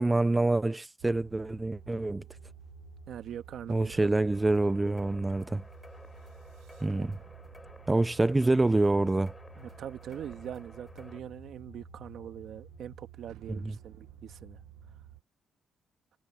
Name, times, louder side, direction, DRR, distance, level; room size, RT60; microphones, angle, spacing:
voice 1, 0.0-2.2 3.7-5.6 6.8-7.2 7.9-9.3 13.5-13.7, right 2 dB, 15° right, 0.6 m, -26 dB
sound 1, 1.0-15.2, right 17 dB, 90° right, 1.4 m, -52 dB
sound 2, 1.8-15.2, left 14 dB, 90° left, 6.8 m, -57 dB
voice 2, 3.1-4.2 7.0-7.1 9.5-14.6, right 9 dB, 70° right, 1.8 m, -42 dB
sound 3, 4.3-11.2, left 2 dB, 15° left, 7.2 m, -54 dB
cardioid pair, 90°, 0 cm